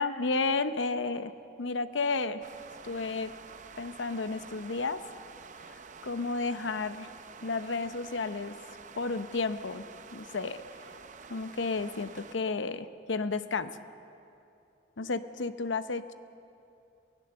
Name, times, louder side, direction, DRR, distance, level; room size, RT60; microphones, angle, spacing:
voice 1, 0.0-1.3 1.6-2.4 2.8-3.3 3.8-5.0 5.7-5.8 6.0-7.1 7.4-8.6 9.0-9.9 10.1-10.6 11.3-13.8 15.0-16.1, left 3 dB, 90° left, 12 dB, 0.8 m, -32 dB
sound 1, 2.4-12.4, right 5 dB, 40° right, 0.6 m, -49 dB
24.0 x 16.5 x 6.8 m, 2.7 s
head